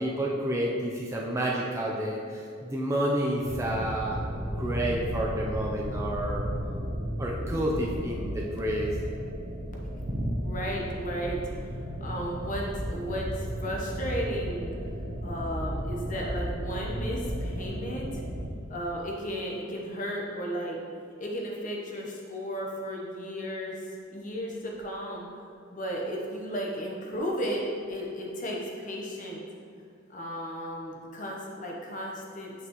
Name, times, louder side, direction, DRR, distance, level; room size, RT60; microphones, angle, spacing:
voice 1, 0.0-4.2 4.6-6.5 7.2-8.9, right 1 dB, 15° right, -2 dB, 0.5 m, -30 dB
sound 1, 3.4-18.5, equal, 50° right, 0.9 m, -34 dB
voice 2, 10.4-11.7 12.0-14.8 15.2-18.2 18.7-20.8 21.2-25.3 25.7-29.4 30.1-32.5, equal, 40° left, -1 dB, 0.9 m, -34 dB
7.8 x 5.8 x 3.1 m, 2.4 s
head